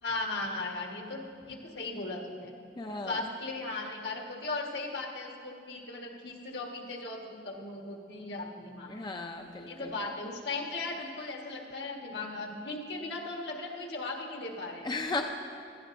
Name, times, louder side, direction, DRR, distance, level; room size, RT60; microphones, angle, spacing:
voice 1, 0.0-2.5 3.0-9.0 9.7-14.9, left 2 dB, 70° left, 1 dB, 1.4 m, -37 dB
voice 2, 2.8-3.3 8.9-9.9 14.8-15.2, left 3 dB, 25° left, 3 dB, 0.5 m, -35 dB
18.0 x 13.5 x 2.6 m, 2.5 s
head